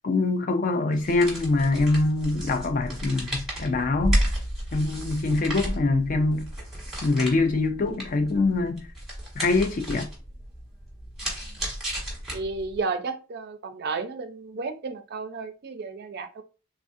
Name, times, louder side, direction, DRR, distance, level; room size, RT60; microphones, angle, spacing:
voice 1, 0.0-4.2 4.7-6.5 7.0-8.9 9.4-10.1, left 3 dB, 40° left, 0.4 m, -24 dB
sound 1, 0.9-12.8, right 1 dB, ahead, 1.1 m, -32 dB
voice 2, 12.3-16.4, right 4 dB, 50° right, 0.4 m, -32 dB
3.4 x 2.4 x 2.5 m
head